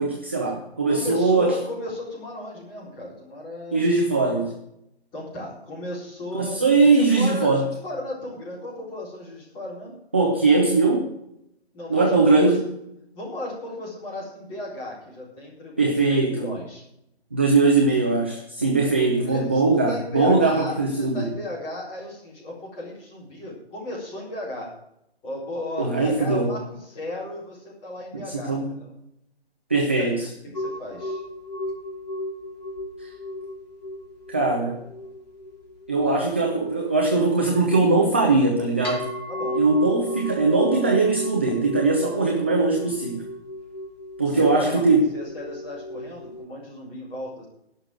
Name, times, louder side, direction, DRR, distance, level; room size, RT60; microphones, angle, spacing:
voice 1, 0.0-1.5 3.7-4.5 6.3-7.7 10.1-11.1 11.9-12.6 15.8-16.5 17.3-21.2 25.8-26.5 28.5-28.7 29.7-30.2 33.0-33.1 34.3-34.8 35.9-39.1 39.6-43.2 44.2-45.0, right 3 dB, 10° right, 0 dB, 0.4 m, -20 dB
voice 2, 0.9-3.9 5.1-9.9 11.7-12.5 13.1-16.8 19.2-24.7 25.2-28.9 29.9-31.2 39.3-39.6 44.2-47.5, left 1 dB, 15° left, -4 dB, 4.1 m, -35 dB
sound 1, 30.5-46.4, left 1 dB, 40° left, 2.8 m, -35 dB
11.5 x 6.4 x 9.0 m, 0.77 s
figure-of-eight pair, 140°, 32 cm